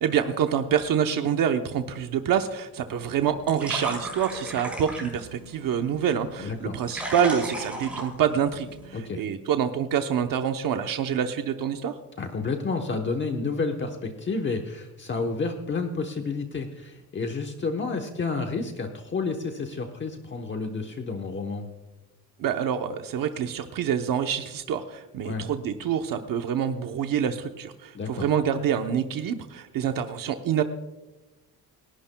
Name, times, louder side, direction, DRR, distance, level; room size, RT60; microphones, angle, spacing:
voice 1, 0.0-12.0 22.4-30.6, right 8 dB, 60° right, 6 dB, 0.9 m, -26 dB
sound 1, 2.9-8.9, right 1 dB, 5° right, 5.2 m, -37 dB
voice 2, 6.4-6.8 8.9-9.2 12.2-21.7 25.2-25.5 27.9-28.3, left 4 dB, 30° left, 3 dB, 1.0 m, -30 dB
29.5 x 11.5 x 2.2 m, 1.1 s
cardioid pair, 165°, 37 cm